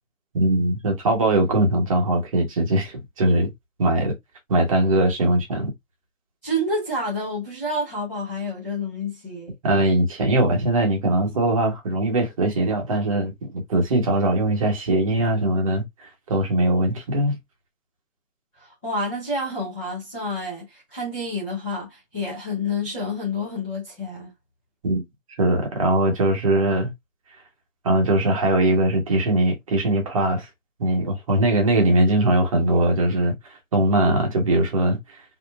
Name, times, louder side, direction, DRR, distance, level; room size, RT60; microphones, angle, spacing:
voice 1, 0.3-3.5 3.8-4.1 4.5-5.7 9.6-17.4 24.8-25.0 25.4-26.9 27.8-30.5 30.8-35.2, right 1 dB, 25° right, 1.2 m, -21 dB
voice 2, 6.4-9.5 18.6-24.3, left 1 dB, 10° left, 0.8 m, -29 dB
5.1 x 3.0 x 2.3 m
hypercardioid pair, 165°, 42 cm